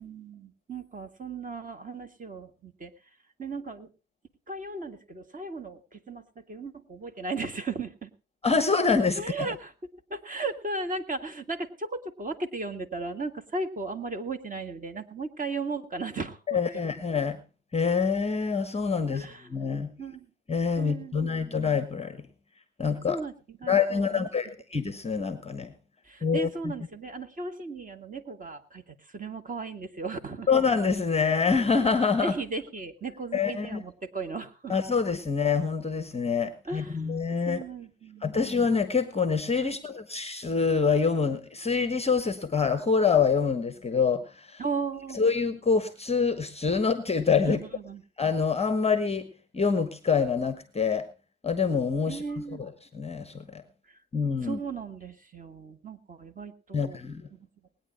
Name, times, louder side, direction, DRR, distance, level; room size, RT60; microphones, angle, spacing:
voice 1, 0.0-2.9 3.4-3.9 4.5-8.1 9.2-9.7 10.1-16.6 19.1-19.6 20.0-20.3 20.8-21.4 23.1-24.3 26.0-30.5 32.2-34.7 36.7-37.1 37.5-38.4 39.6-39.8 44.6-45.2 47.5-48.0 52.1-52.6 53.9-54.0 54.4-57.0 57.3-57.5, right 3 dB, 20° right, 8 dB, 2.1 m, -36 dB
voice 2, 8.4-9.5 16.5-17.4 17.7-19.9 20.5-22.3 22.8-23.2 23.7-25.7 26.2-26.7 30.5-32.3 33.3-33.8 34.7-37.6 38.2-44.6 45.1-47.6 48.2-49.3 49.5-51.1 51.4-52.2 52.6-53.6 54.1-54.6 56.7-57.3, left 5 dB, 15° left, 12 dB, 1.3 m, -26 dB
20.0 x 9.6 x 4.3 m, 0.33 s
hypercardioid pair, 80°, 43 cm